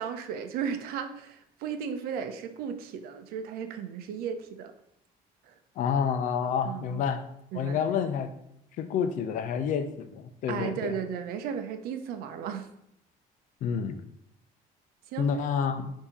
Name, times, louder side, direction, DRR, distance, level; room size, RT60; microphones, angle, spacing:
voice 1, 0.0-4.7 5.5-5.6 6.6-7.0 7.5-7.8 10.5-12.7 15.1-15.3, right 7 dB, 80° right, 9 dB, 0.7 m, -35 dB
voice 2, 5.8-7.2 7.5-8.3 8.8-11.0 13.6-14.0 15.2-15.9, left 7 dB, 60° left, 8 dB, 0.6 m, -29 dB
7.2 x 2.9 x 5.0 m, 0.77 s
cardioid pair, 155°, 15 cm